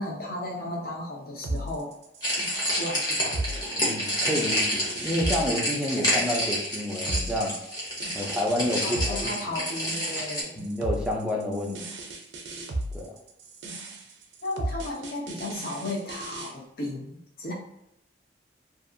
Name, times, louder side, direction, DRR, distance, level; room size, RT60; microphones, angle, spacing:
voice 1, 0.0-1.9 2.7-3.6 8.8-10.7 14.4-17.5, left 1 dB, 55° left, -2 dB, 0.7 m, -34 dB
sound 1, 1.4-16.5, right 2 dB, 90° right, 0.5 m, -36 dB
sound 2, 2.2-10.4, equal, 20° left, 0.8 m, -28 dB
voice 2, 3.8-7.6 8.1-9.2 9.5-9.6 10.6-11.8 12.9-13.1, left 1 dB, 5° right, -1 dB, 0.4 m, -29 dB
2.6 x 2.4 x 2.5 m, 0.81 s
head